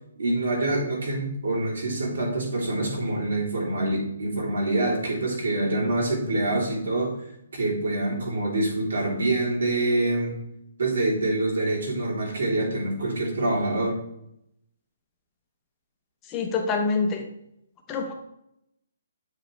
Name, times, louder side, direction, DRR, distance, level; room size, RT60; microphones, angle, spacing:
voice 1, 0.2-7.2 7.5-10.4 10.8-14.0, right 2 dB, 80° right, -3 dB, 2.9 m, -26 dB
voice 2, 16.3-17.2 17.9-18.1, left 4 dB, 15° left, 2 dB, 0.7 m, -26 dB
8.2 x 5.2 x 3.2 m, 0.77 s
hypercardioid pair, 180°, 0 cm